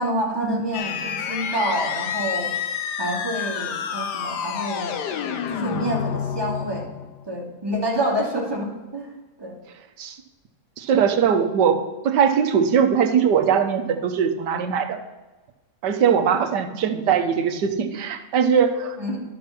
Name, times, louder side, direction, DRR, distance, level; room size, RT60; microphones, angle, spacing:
voice 1, 0.0-2.5 3.0-4.9 5.5-6.9 7.3-9.5 19.0-19.2, right 1 dB, 15° right, -2 dB, 2.3 m, -27 dB
sound 1, 0.7-7.2, left 8 dB, 80° left, 1.4 m, -29 dB
voice 2, 10.8-15.0 15.8-19.0, right 7 dB, 85° right, 8 dB, 1.5 m, -21 dB
11.5 x 6.5 x 5.8 m, 1.2 s
omnidirectional pair, 1.8 m